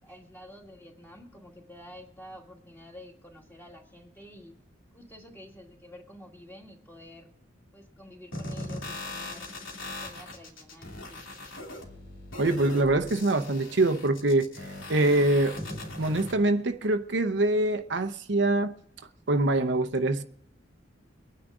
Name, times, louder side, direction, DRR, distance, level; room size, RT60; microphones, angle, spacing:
voice 1, 0.0-4.5 4.9-7.3 7.7-9.5 9.8-11.2, left 1 dB, 10° left, 2.2 m, -49 dB
sound 1, 8.3-16.3, left 2 dB, 90° left, 2.9 m, -40 dB
voice 2, 12.4-15.6 16.0-18.7 19.3-20.2, right 2 dB, 60° right, 0.7 m, -24 dB
23.0 x 9.7 x 3.7 m
head